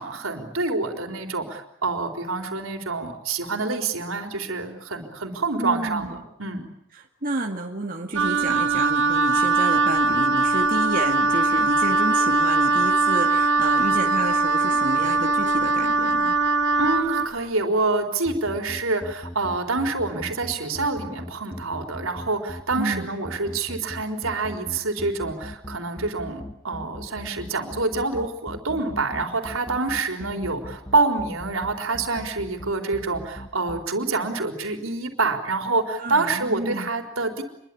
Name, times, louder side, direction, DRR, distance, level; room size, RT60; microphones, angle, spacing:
voice 1, 0.0-6.7 16.8-37.4, right 3 dB, 80° right, 5 dB, 4.2 m, -27 dB
voice 2, 5.6-6.2 7.0-16.4 22.8-23.1 30.4-30.5 36.0-36.9, right 2 dB, 40° right, 1 dB, 2.3 m, -30 dB
Wind instrument woodwind instrument, 8.1-17.3, right 3 dB, 60° right, 2.2 m, -21 dB
sound 1, 18.3-33.8, left 1 dB, 15° left, 1.5 m, -38 dB
27.0 x 23.0 x 8.7 m, 0.76 s
head